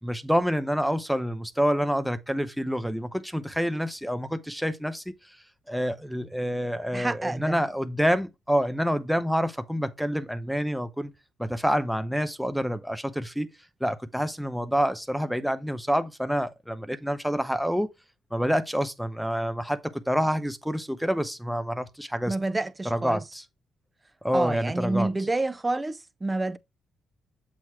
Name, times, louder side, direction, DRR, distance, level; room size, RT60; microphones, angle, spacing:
voice 1, 0.0-5.1 5.7-11.1 11.4-13.5 13.8-17.9 18.3-22.3 22.8-23.4 24.2-25.1, equal, ahead, 0.8 m, -27 dB
voice 2, 6.9-7.6 22.3-23.2 24.3-26.6, right 2 dB, 20° right, 0.5 m, -28 dB
7.6 x 3.1 x 4.7 m
cardioid pair, 90°, 0 cm